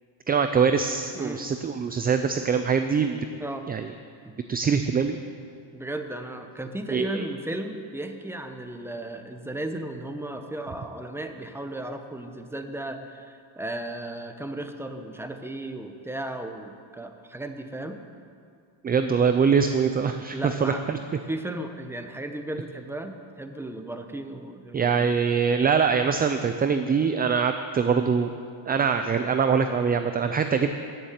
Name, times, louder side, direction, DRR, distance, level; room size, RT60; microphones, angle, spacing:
voice 1, 0.3-3.3 3.7-3.9 4.5-5.2 6.9-7.3 18.8-21.0 24.7-28.3 28.7-30.7, right 6 dB, 20° right, 8 dB, 0.3 m, -23 dB
voice 2, 5.7-18.0 20.3-20.8 21.3-25.1, right 1 dB, 5° right, 6 dB, 0.9 m, -35 dB
14.5 x 7.1 x 9.2 m, 2.3 s
cardioid pair, 125°, 50 cm